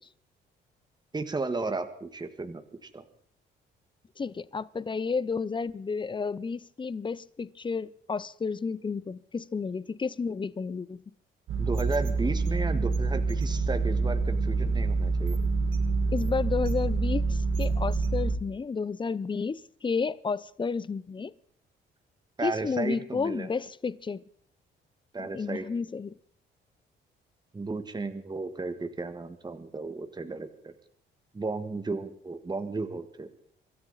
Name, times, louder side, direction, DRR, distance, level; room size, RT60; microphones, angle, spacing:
voice 1, 1.1-2.6 2.9-3.0 11.6-15.4 22.4-23.5 25.1-25.6 27.5-30.7 31.3-33.4, right 3 dB, 20° right, 1.6 m, -34 dB
voice 2, 4.2-11.0 16.1-21.3 22.4-24.2 25.2-26.2, left 5 dB, 25° left, 0.6 m, -31 dB
sound 1, 11.5-18.4, right 3 dB, 75° right, 1.9 m, -27 dB
25.5 x 13.0 x 4.1 m
cardioid pair, 90°, 20 cm